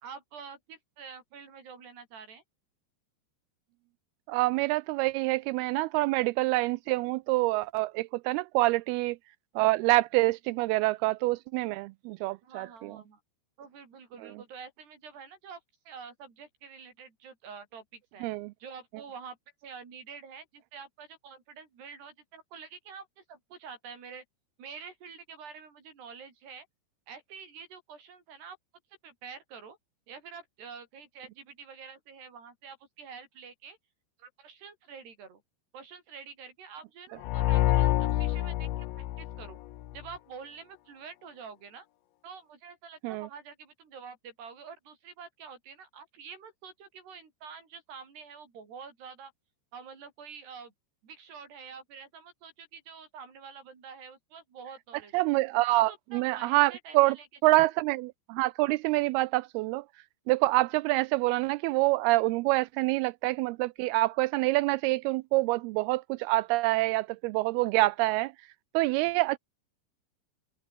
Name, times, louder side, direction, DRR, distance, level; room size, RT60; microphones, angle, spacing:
voice 1, 0.0-2.4 12.4-13.2 13.6-15.6 15.9-18.3 18.6-19.4 19.6-24.2 24.6-26.7 27.1-28.6 29.0-29.8 30.1-33.8 34.2-35.4 35.7-39.6 39.9-41.9 42.2-49.3 49.7-50.7 51.0-55.3 55.7-57.7, right 6 dB, 65° right, 6.9 m, -47 dB
voice 2, 4.3-9.2 9.6-13.0 18.2-18.5 43.0-43.3 55.1-57.2 57.4-59.8 60.3-68.3 68.7-69.4, right 20 dB, 90° right, 2.2 m, -26 dB
sound 1, 37.2-40.0, left 14 dB, 85° left, 3.6 m, -27 dB
omnidirectional pair, 5.0 m